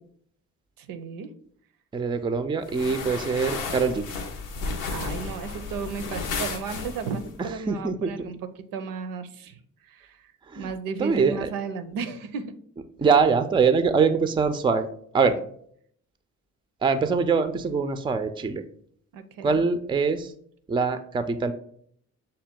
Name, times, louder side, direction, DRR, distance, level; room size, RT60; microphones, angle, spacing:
voice 1, 0.8-1.3 4.9-10.3 10.6-12.6 19.1-19.6, right 5 dB, 70° right, 10 dB, 0.6 m, -34 dB
voice 2, 1.9-4.1 7.7-8.1 10.5-10.7 11.0-11.5 13.0-14.9 15.1-15.3 16.8-18.6 19.4-20.3 20.7-21.5, right 5 dB, 15° right, 10 dB, 0.4 m, -23 dB
sound 1, 2.7-7.3, left 4 dB, 90° left, 0.6 m, -33 dB
6.4 x 2.2 x 3.6 m, 0.63 s
hypercardioid pair, 50°, 36 cm